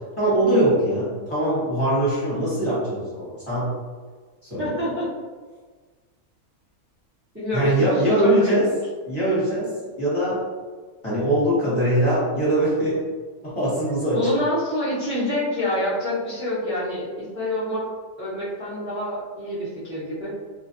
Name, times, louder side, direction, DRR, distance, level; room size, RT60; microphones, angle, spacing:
voice 1, 0.2-3.7 4.5-4.9 7.5-8.7 9.1-10.4 11.0-13.0 13.4-14.2, right 1 dB, 25° left, -11 dB, 1.0 m, -22 dB
voice 2, 4.6-5.0 7.3-7.9 8.2-8.6 14.1-17.8 18.2-20.3, left 1 dB, 15° right, -12 dB, 0.6 m, -26 dB
2.4 x 2.3 x 2.5 m, 1.4 s
omnidirectional pair, 1.6 m